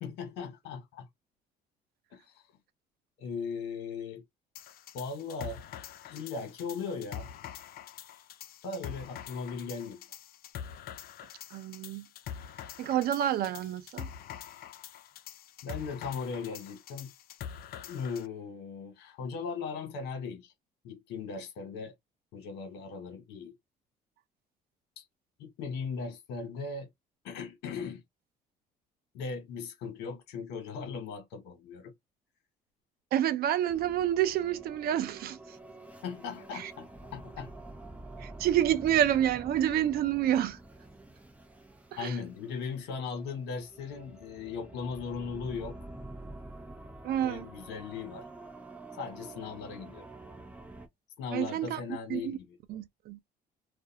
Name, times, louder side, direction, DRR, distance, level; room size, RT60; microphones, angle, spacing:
voice 1, 0.0-1.1 2.1-2.2 3.2-4.2 4.9-5.6 6.1-7.3 8.6-10.1 15.6-17.1 17.8-20.5 20.8-21.9 22.3-23.5 25.0-25.1 25.4-26.9 27.2-28.0 29.1-31.9 36.0-37.5 42.0-45.8 47.2-48.3 49.0-50.1 51.2-52.6, left 5 dB, 85° left, 1.1 m, -38 dB
sound 1, 4.6-18.3, left 9 dB, 65° left, 0.4 m, -45 dB
voice 2, 11.5-12.0 12.8-14.1 33.1-35.6 36.5-36.7 38.2-40.6 41.9-42.2 47.0-47.5 51.3-51.8 52.1-52.4 52.7-53.2, right 11 dB, 65° right, 0.5 m, -28 dB
sound 2, 33.7-50.9, right 2 dB, 10° right, 0.8 m, -48 dB
2.5 x 2.2 x 2.7 m
cardioid pair, 110°, 17 cm